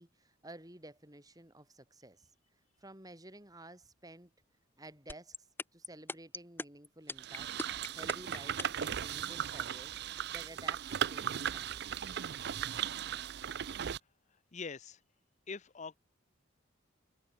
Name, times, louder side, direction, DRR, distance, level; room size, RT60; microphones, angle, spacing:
voice 1, 0.0-2.3 2.8-4.3 4.8-5.5 5.7-7.5 8.0-10.0 10.3-12.0, right 1 dB, 20° right, 5.2 m, -53 dB
sound 1, 5.1-8.9, left 2 dB, 10° left, 1.2 m, -39 dB
sound 2, 7.2-14.0, right 9 dB, 55° right, 0.5 m, -37 dB
voice 2, 14.5-15.0 15.5-16.0, left 5 dB, 35° left, 0.6 m, -43 dB
head